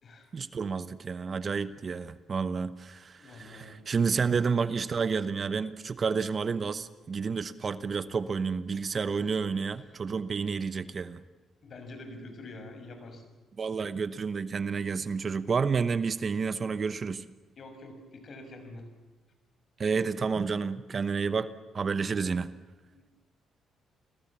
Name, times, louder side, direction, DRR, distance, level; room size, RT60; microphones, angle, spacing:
voice 1, 0.3-11.2 13.6-17.2 19.8-22.5, right 5 dB, 40° right, 14 dB, 1.0 m, -30 dB
voice 2, 3.2-3.8 9.2-9.3 11.6-13.2 17.6-18.9 22.9-23.2, left 2 dB, 50° left, 6 dB, 6.4 m, -46 dB
29.5 x 21.0 x 7.4 m, 1.2 s
cardioid pair, 90°, 0 cm